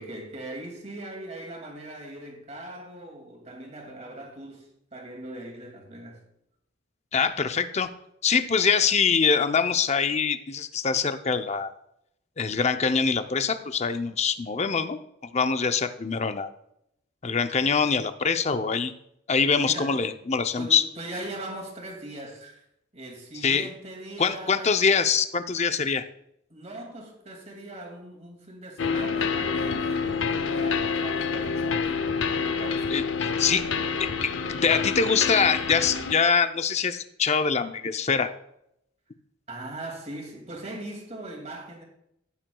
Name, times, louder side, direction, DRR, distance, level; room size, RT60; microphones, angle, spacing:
voice 1, 0.0-6.2 19.5-19.9 20.6-22.6 22.9-24.8 26.5-33.0 39.5-41.8, right 1 dB, 35° right, 2.3 m, -40 dB
voice 2, 7.1-7.9 8.2-11.7 12.4-15.0 15.3-16.5 17.2-18.9 19.3-20.8 23.4-23.7 24.2-26.0 32.9-33.6 34.0-38.3, left 5 dB, 35° left, 0.6 m, -24 dB
sound 1, 28.8-36.1, left 5 dB, 75° left, 0.6 m, -27 dB
15.5 x 9.0 x 2.3 m
head